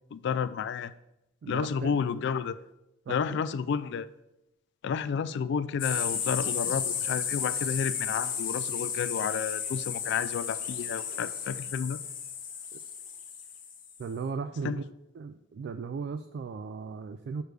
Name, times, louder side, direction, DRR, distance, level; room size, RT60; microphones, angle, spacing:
voice 1, 0.1-0.9 1.5-2.6 3.1-4.1 4.8-12.0 14.6-14.8, left 6 dB, 60° left, 15 dB, 0.3 m, -31 dB
voice 2, 1.4-2.0 3.1-3.4 12.7-12.8 14.0-14.8 15.2-17.4, right 5 dB, 60° right, 10 dB, 0.3 m, -37 dB
sound 1, 5.8-14.0, left 7 dB, 45° left, 0.9 m, -33 dB
6.6 x 6.2 x 3.3 m, 0.89 s
head